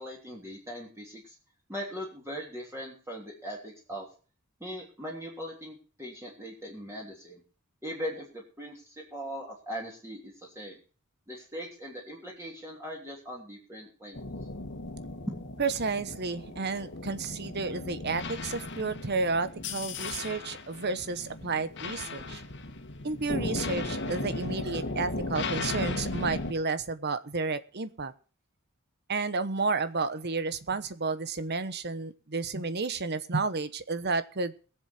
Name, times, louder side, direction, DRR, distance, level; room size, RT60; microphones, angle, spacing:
voice 1, 0.0-1.3 1.7-4.1 4.6-7.4 7.8-10.8 11.3-14.2, equal, 15° right, -3 dB, 3.2 m, -40 dB
sound 1, 14.1-26.5, left 2 dB, 55° left, 2.0 m, -36 dB
voice 2, 15.6-22.4 23.0-28.1 29.1-34.5, right 4 dB, 50° right, 13 dB, 1.1 m, -31 dB
21.5 x 7.7 x 4.4 m, 0.37 s
head